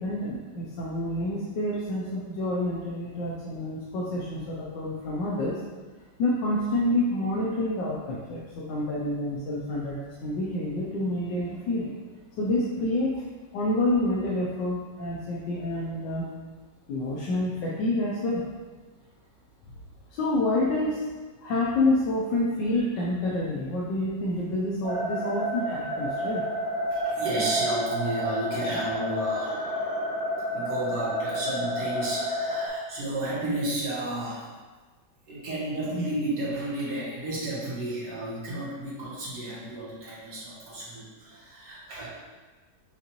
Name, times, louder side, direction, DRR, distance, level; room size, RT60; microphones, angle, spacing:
voice 1, 0.0-5.6 6.2-11.9 12.4-13.2 13.5-16.3 16.9-18.4 20.1-21.1 21.4-26.4, left 1 dB, 75° left, -5 dB, 1.3 m, -28 dB
sound 1, 24.8-32.7, equal, 5° right, 0.5 m, -30 dB
voice 2, 26.9-29.9 30.5-34.5 35.3-42.1, right 1 dB, 65° right, -7 dB, 1.9 m, -32 dB
6.5 x 2.5 x 2.9 m, 1.3 s
omnidirectional pair, 2.0 m